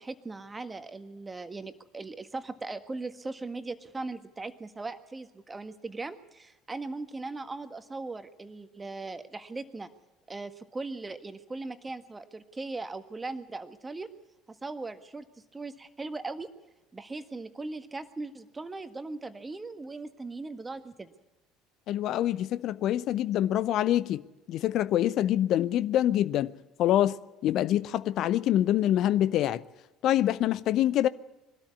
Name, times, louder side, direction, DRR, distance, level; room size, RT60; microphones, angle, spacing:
voice 1, 0.0-9.9 10.3-14.1 14.5-15.2 15.5-16.5 16.9-21.1, right 3 dB, 20° right, 1.6 m, -39 dB
voice 2, 21.9-24.2 24.5-26.5 26.8-29.6 30.0-31.1, left 12 dB, 55° left, 0.7 m, -25 dB
22.5 x 13.0 x 9.6 m
figure-of-eight pair, 60°, 0 cm